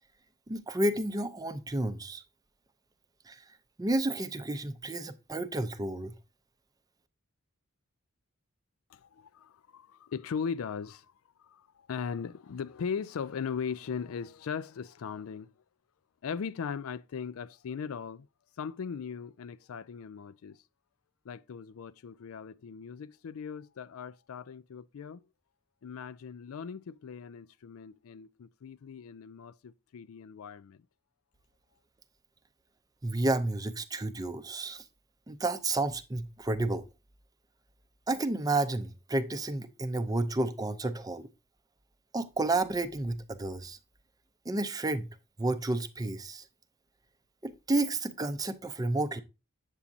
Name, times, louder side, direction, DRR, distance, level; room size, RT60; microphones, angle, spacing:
voice 1, 0.5-2.2 3.3-3.4 3.8-6.1 33.0-34.8 35.3-36.8 38.1-41.3 42.1-43.8 44.5-46.5 47.4-49.2, right 2 dB, 15° right, 0.5 m, -31 dB
voice 2, 8.9-11.1 11.4-11.6 11.9-15.5 16.2-18.3 18.6-20.6 21.3-25.2 25.8-30.8, left 6 dB, 80° left, 0.4 m, -39 dB
8.3 x 7.1 x 2.5 m
head